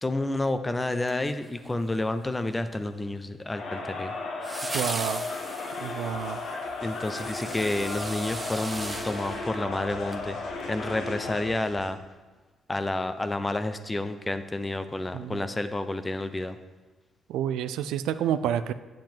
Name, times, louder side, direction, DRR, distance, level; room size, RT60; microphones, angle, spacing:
voice 1, 0.0-4.1 6.8-10.4 10.7-12.0 12.7-16.6, left 2 dB, 15° left, 10 dB, 0.6 m, -30 dB
sound 1, 1.0-1.9 4.4-10.3 10.6-10.7, right 2 dB, 20° right, 0.9 m, -39 dB
Crowd, 3.5-11.6, left 3 dB, 70° left, 1.1 m, -35 dB
voice 2, 4.7-5.2 5.8-6.4 15.1-15.4 17.3-18.7, right 10 dB, 90° right, 12 dB, 0.4 m, -29 dB
sound 2, 6.1-11.9, left 2 dB, 90° left, 2.9 m, -49 dB
7.6 x 7.4 x 4.5 m, 1.3 s
cardioid pair, 90°, 0 cm